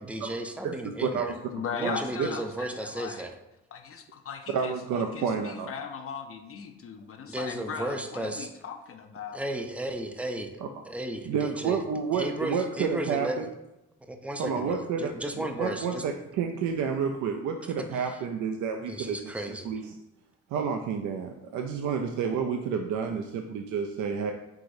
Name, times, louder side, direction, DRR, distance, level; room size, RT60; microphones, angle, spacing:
voice 1, 0.1-1.3 1.7-3.4 7.3-8.5 9.3-10.5 10.9-11.8 12.1-13.5 14.1-16.0 18.9-19.7, right 1 dB, 5° right, 5 dB, 0.4 m, -34 dB
voice 2, 0.6-1.3 1.8-2.3 4.5-5.7 10.6-10.7 11.2-13.5 14.4-20.0 20.5-24.3, right 6 dB, 75° right, 5 dB, 0.4 m, -30 dB
voice 3, 1.5-3.3 3.7-4.7 5.1-9.5, left 6 dB, 50° left, 6 dB, 0.5 m, -38 dB
4.8 x 3.8 x 2.6 m, 0.90 s
cardioid pair, 90°, 30 cm